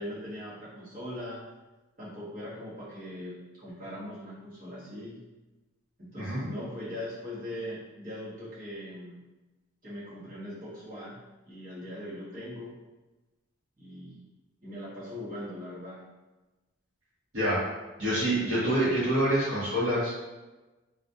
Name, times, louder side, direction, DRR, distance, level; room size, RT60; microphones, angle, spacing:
voice 1, 0.0-1.4 2.0-5.2 6.0-9.2 9.8-11.2 11.4-12.8 13.8-14.2 14.6-16.0, left 1 dB, 40° right, -10 dB, 1.0 m, -40 dB
voice 2, 18.0-20.1, right 1 dB, 80° right, -11 dB, 1.1 m, -26 dB
2.6 x 2.4 x 2.2 m, 1.1 s
head